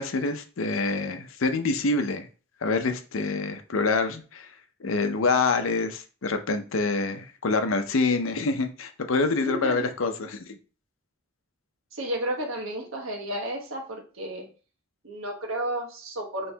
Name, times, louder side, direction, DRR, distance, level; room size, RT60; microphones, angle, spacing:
voice 1, 0.0-2.3 2.6-4.5 4.8-10.5, left 3 dB, 75° left, 8 dB, 0.6 m, -26 dB
voice 2, 9.4-9.8 11.9-14.5 15.0-16.5, right 1 dB, 80° right, 2 dB, 1.2 m, -32 dB
4.4 x 3.1 x 3.4 m, 0.37 s
head